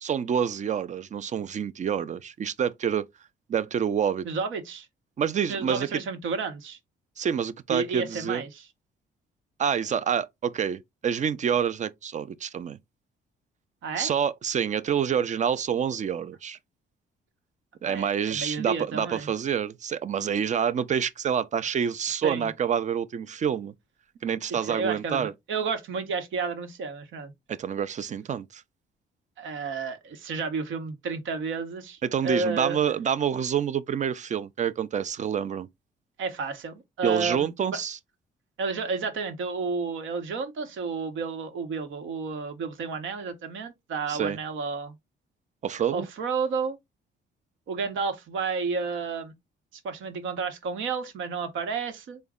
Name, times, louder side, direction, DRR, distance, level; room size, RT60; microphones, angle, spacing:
voice 1, 0.0-3.1 3.5-4.3 5.2-5.9 7.2-8.4 9.6-12.8 14.0-16.6 17.8-23.7 24.2-25.3 27.5-28.6 32.0-35.7 37.0-38.0 44.1-44.4 45.6-46.1, right 8 dB, 40° right, 0.4 m, -27 dB
voice 2, 4.2-4.9 5.5-6.8 7.7-8.7 13.8-14.1 17.8-19.3 22.2-22.5 24.6-27.3 29.4-32.8 36.2-37.8 38.6-44.9 45.9-46.8 47.7-49.3 49.8-52.2, right 4 dB, 75° right, 1.0 m, -31 dB
3.9 x 2.2 x 3.5 m
cardioid pair, 90°, 20 cm